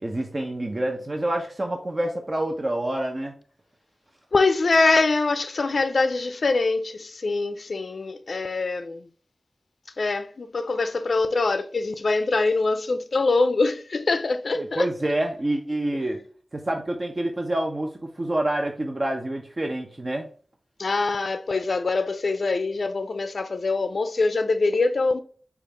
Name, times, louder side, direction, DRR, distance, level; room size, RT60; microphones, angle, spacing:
voice 1, 0.0-3.3 14.6-16.2 16.5-20.3, right 1 dB, 45° right, 0.6 m, -27 dB
voice 2, 4.3-9.0 10.0-14.8 20.8-25.2, left 3 dB, 80° left, 0.3 m, -24 dB
5.0 x 2.4 x 3.9 m
wide cardioid pair, 55°, 0 cm